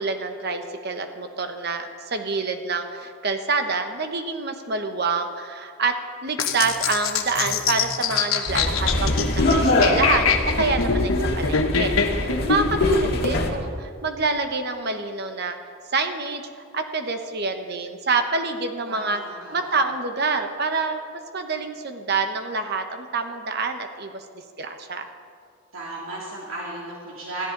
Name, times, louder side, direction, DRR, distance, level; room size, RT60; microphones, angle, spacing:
voice 1, 0.0-15.6 15.9-19.2 19.5-24.2 24.6-25.1, right 4 dB, 50° right, 6 dB, 1.2 m, -27 dB
sound 1, 6.4-13.3, left 5 dB, 85° left, 1.2 m, -24 dB
tram in curves (old surface car), 8.5-13.5, left 1 dB, 50° left, 1.8 m, -24 dB
voice 2, 8.7-9.5 18.9-19.7 25.7-27.5, right 2 dB, 75° right, -4 dB, 2.9 m, -36 dB
21.0 x 14.5 x 4.0 m, 2.1 s
head